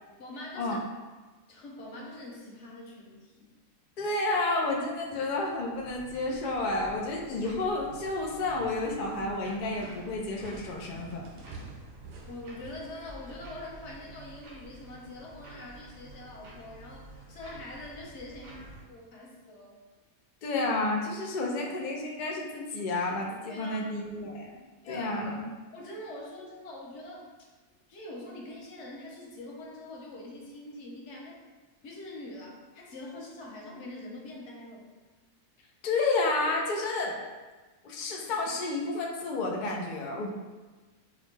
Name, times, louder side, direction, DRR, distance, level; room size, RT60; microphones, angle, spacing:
voice 1, 0.2-0.8 1.5-3.5 12.3-19.8 23.5-23.9 24.8-25.4 25.7-27.3 27.9-31.4 31.8-34.9, left 1 dB, 60° left, -2 dB, 0.9 m, -44 dB
voice 2, 4.0-11.3 20.4-25.4 35.8-37.2 37.8-40.3, left 2 dB, 90° left, -1 dB, 0.4 m, -31 dB
sound 1, 4.6-5.8 6.1-6.5 6.8-13.3, right 3 dB, 65° right, 0.8 m, -51 dB
sound 2, 5.7-18.8, right 2 dB, 85° right, 1.4 m, -50 dB
4.9 x 2.1 x 3.2 m, 1.3 s
omnidirectional pair, 1.5 m